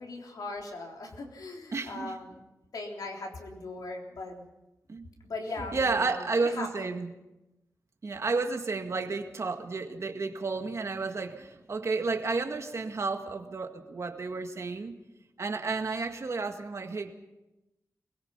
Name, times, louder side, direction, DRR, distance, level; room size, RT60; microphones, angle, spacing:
voice 1, 0.0-2.4 2.7-4.4 5.2-7.0, left 2 dB, 85° left, 1 dB, 3.6 m, -39 dB
voice 2, 1.7-2.2 4.9-5.1 5.6-7.1 8.0-15.0 15.4-17.1, right 4 dB, 50° right, 5 dB, 1.9 m, -32 dB
22.5 x 21.5 x 5.6 m, 0.97 s
wide cardioid pair, 110°, 6 cm